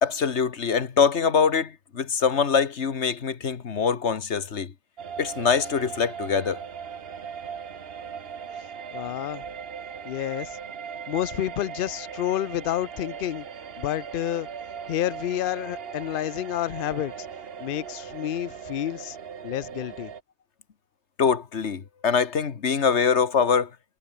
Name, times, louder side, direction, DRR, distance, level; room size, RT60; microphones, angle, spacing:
voice 1, 0.0-4.7 5.2-6.6 21.2-23.7, left 6 dB, 80° left, 1.7 m, -23 dB
sound 1, 5.0-20.2, right 7 dB, 60° right, 1.3 m, -39 dB
voice 2, 8.9-9.4 10.0-10.6 11.1-13.5 13.8-14.5 14.9-17.1 17.6-19.2 19.4-20.1, left 12 dB, 60° left, 0.7 m, -29 dB
omnidirectional pair, 1.1 m